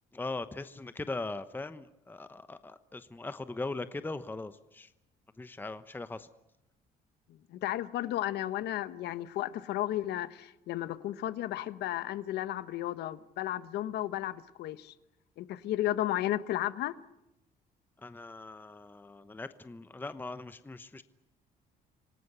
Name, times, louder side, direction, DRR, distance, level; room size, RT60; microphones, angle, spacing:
voice 1, 0.1-4.9 5.4-6.3 18.0-21.0, left 3 dB, 10° left, 1.0 m, -40 dB
voice 2, 7.5-14.9 15.4-16.9, left 13 dB, 75° left, 1.2 m, -33 dB
27.0 x 18.0 x 8.2 m
cardioid pair, 110°, 17 cm